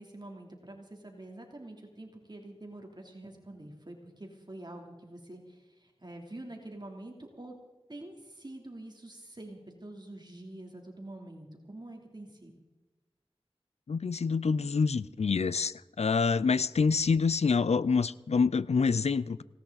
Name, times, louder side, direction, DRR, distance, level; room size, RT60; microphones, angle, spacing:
voice 1, 0.0-7.6 7.9-12.5, right 1 dB, 45° right, 2 dB, 3.1 m, -46 dB
voice 2, 13.9-19.4, left 5 dB, 85° left, 18 dB, 0.4 m, -27 dB
19.0 x 17.5 x 4.0 m, 1.2 s
wide cardioid pair, 40°, 11 cm